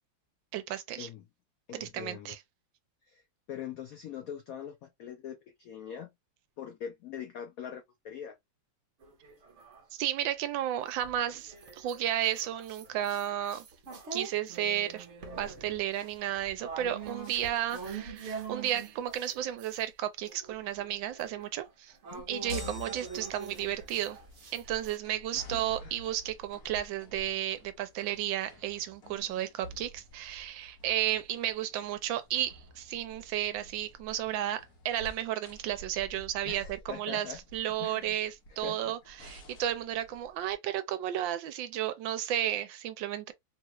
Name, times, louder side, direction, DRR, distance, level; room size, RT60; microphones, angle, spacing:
voice 1, 0.5-1.1 1.7-2.4 9.9-13.7 14.1-15.1 15.4-21.9 22.3-24.2 24.5-43.3, right 12 dB, 75° right, 1.3 m, -33 dB
voice 2, 1.7-2.4 3.1-3.2 3.5-6.1 6.6-8.4 22.1-22.3 25.5-26.0 36.4-37.4 37.8-38.2 38.5-38.9, left 8 dB, 85° left, 0.7 m, -42 dB
sound 1, 9.0-10.4 10.9-19.8 20.2-25.0, right 5 dB, 50° right, 0.9 m, -44 dB
sound 2, 22.1-40.5, left 2 dB, 55° left, 1.2 m, -50 dB
sound 3, 22.5-23.8, left 1 dB, 20° left, 0.9 m, -47 dB
3.4 x 2.3 x 2.9 m
omnidirectional pair, 2.1 m